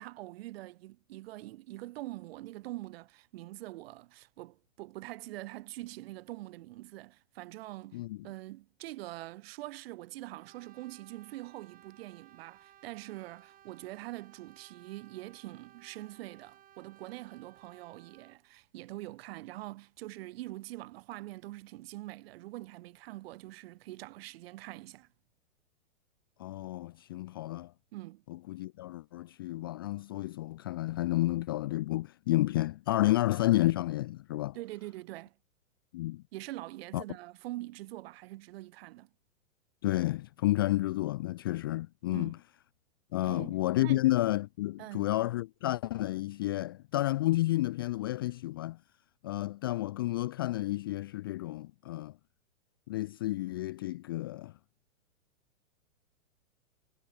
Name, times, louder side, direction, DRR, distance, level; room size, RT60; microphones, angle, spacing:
voice 1, 0.0-25.1 27.9-28.2 34.5-35.3 36.3-39.1 42.1-42.4 43.2-44.0 44.8-45.1, right 17 dB, 50° right, 1.1 m, -44 dB
Brass instrument, 10.3-18.4, right 12 dB, 20° right, 2.1 m, -59 dB
voice 2, 26.4-27.7 28.3-34.6 35.9-36.2 36.9-37.0 39.8-42.4 43.1-48.8 49.2-52.2 52.9-54.5, left 17 dB, 20° left, 0.3 m, -31 dB
hypercardioid pair, 145°, 39 cm